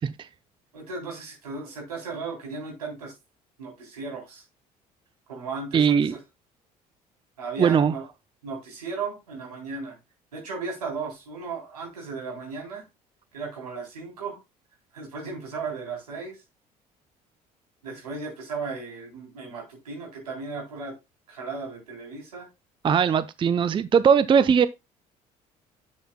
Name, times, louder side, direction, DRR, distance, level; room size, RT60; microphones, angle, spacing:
voice 1, 0.7-3.1 3.6-4.4 5.3-6.1 7.4-8.0 8.4-9.9 10.3-12.8 13.3-14.4 14.9-16.4 17.8-20.9 21.3-22.5, right 4 dB, 80° right, 3.6 m, -35 dB
voice 2, 5.7-6.1 7.6-7.9 22.8-24.7, right 7 dB, 25° right, 0.5 m, -20 dB
11.0 x 7.3 x 2.3 m
figure-of-eight pair, 55°, 20 cm